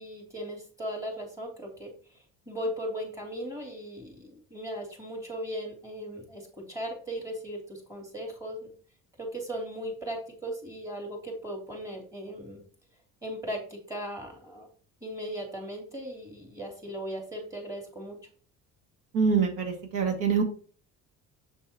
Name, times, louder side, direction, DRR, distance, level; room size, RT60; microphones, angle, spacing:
voice 1, 0.0-8.7 9.2-12.6 13.2-14.7 15.0-18.2, equal, 10° right, 1 dB, 2.9 m, -37 dB
voice 2, 19.1-20.4, right 5 dB, 90° right, 4 dB, 2.3 m, -25 dB
7.3 x 6.9 x 2.9 m, 0.41 s
cardioid pair, 140°, 31 cm